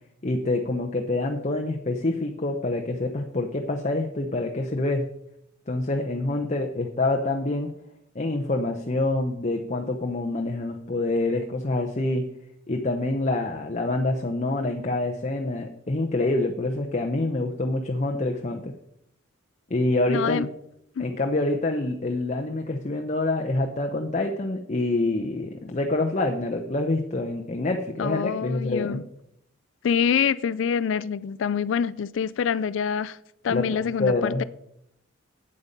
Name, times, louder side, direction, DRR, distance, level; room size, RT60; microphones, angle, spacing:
voice 1, 0.2-5.1 5.7-7.7 8.1-12.3 12.7-18.7 19.7-20.5 21.0-29.0 33.5-34.4, left 2 dB, 35° left, 0.8 m, -26 dB
voice 2, 20.1-20.5 21.0-21.1 28.0-29.0 29.8-33.2 33.4-34.4, left 7 dB, 70° left, 0.4 m, -26 dB
8.7 x 8.1 x 5.2 m
head